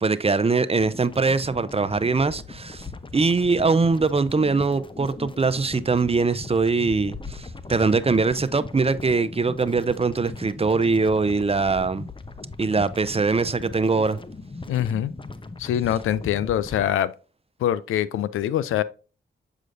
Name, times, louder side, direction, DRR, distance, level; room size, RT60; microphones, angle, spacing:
voice 1, 0.0-2.9 3.1-12.1 12.6-14.2, right 4 dB, 30° right, 0.6 m, -22 dB
sound 1, 0.8-16.9, left 3 dB, 25° left, 0.7 m, -39 dB
voice 2, 14.7-15.1 15.6-17.1 17.6-18.8, left 11 dB, 90° left, 0.4 m, -24 dB
7.6 x 5.0 x 2.6 m
supercardioid pair, 40°, 21 cm